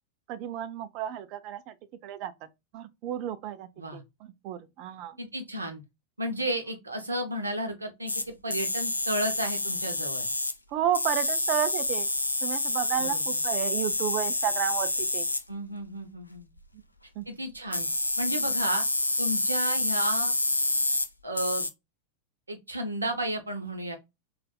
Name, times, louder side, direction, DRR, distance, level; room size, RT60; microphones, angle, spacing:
voice 1, 0.3-1.7 2.0-2.5 2.7-5.2 10.7-12.1 12.4-15.3 17.2-17.3, right 10 dB, 40° right, 0.5 m, -32 dB
voice 2, 5.2-5.8 6.2-10.3 13.0-13.2 15.5-16.5 17.3-17.9 18.2-18.8 19.2-20.3 21.2-21.7 22.5-24.0, right 1 dB, 80° right, 0.8 m, -33 dB
sound 1, 8.1-8.2 8.5-10.5 10.9-15.4 17.7-21.1 21.4-21.7, left 2 dB, 85° left, 0.4 m, -28 dB
3.9 x 2.4 x 2.2 m
figure-of-eight pair, 90°, 0 cm